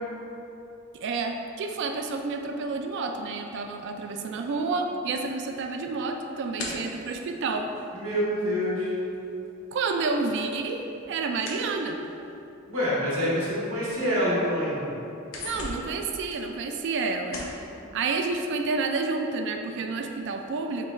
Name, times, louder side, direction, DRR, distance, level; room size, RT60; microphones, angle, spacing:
voice 1, 1.0-7.7 9.7-12.0 15.4-17.4 17.9-20.8, right 3 dB, 55° right, 4 dB, 0.3 m, -29 dB
sound 1, 5.1-8.9 9.1-12.4 13.1-13.2 13.7-13.8 14.1-14.7 15.0-17.0 17.3-17.7, left 2 dB, 70° left, 0.7 m, -41 dB
voice 2, 7.9-8.9 12.7-14.8, equal, 90° right, -7 dB, 1.3 m, -26 dB
5.0 x 4.0 x 2.3 m, 2.8 s
head